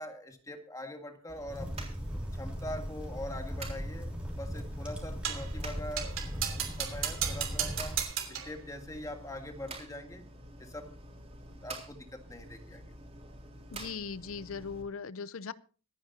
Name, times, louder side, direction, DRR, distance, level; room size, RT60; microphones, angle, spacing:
voice 1, 0.0-2.0 2.3-10.3 10.6-11.0 11.5-12.8, left 1 dB, 15° left, 5 dB, 1.8 m, -43 dB
sound 1, 1.3-14.8, right 2 dB, 30° right, 3.9 m, -48 dB
sound 2, 1.5-8.0, equal, 5° right, 3.2 m, -38 dB
sound 3, 5.2-5.5 6.0-8.6, right 9 dB, 70° right, 3.1 m, -34 dB
voice 2, 13.7-15.5, left 5 dB, 85° left, 16 dB, 0.7 m, -39 dB
25.5 x 9.9 x 2.8 m, 0.38 s
head